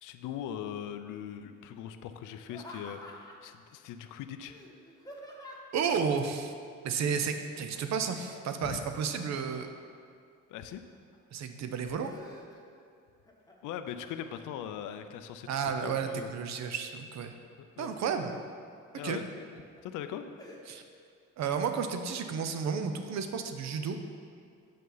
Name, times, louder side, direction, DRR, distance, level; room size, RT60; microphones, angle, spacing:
voice 1, 0.0-4.6 8.6-8.9 10.5-10.8 13.6-15.5 15.8-16.3 17.8-17.9 18.9-20.3, left 9 dB, 85° left, 9 dB, 0.5 m, -40 dB
Laughter, 2.5-3.5 4.5-5.8 7.6-8.0 8.4-10.0 10.5-11.2 11.6-12.9 13.2-13.8 14.3-15.1 15.6-16.4 17.6-18.4 18.9-19.0 19.5-19.8 20.4-20.6, left 1 dB, 10° left, 1.0 m, -50 dB
voice 2, 5.7-6.5 6.8-9.7 11.3-12.1 15.5-17.3 17.8-18.4 19.0-19.2 20.7-20.8 21.4-24.0, right 6 dB, 65° right, 7 dB, 0.6 m, -32 dB
6.6 x 5.4 x 3.9 m, 2.2 s
cardioid pair, 90°, 30 cm